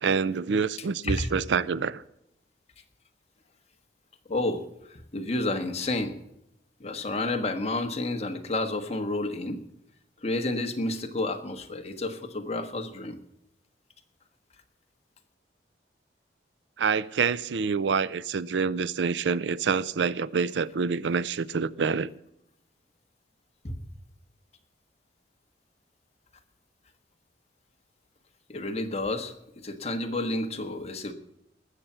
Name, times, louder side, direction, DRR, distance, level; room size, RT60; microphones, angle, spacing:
voice 1, 0.0-2.0 16.8-22.1, right 5 dB, 75° right, 0.5 m, -27 dB
voice 2, 4.3-6.2 6.8-9.6 10.2-13.2 23.6-23.8 28.5-29.3 29.6-31.1, left 2 dB, 35° left, 1.4 m, -30 dB
19.5 x 7.4 x 5.6 m
head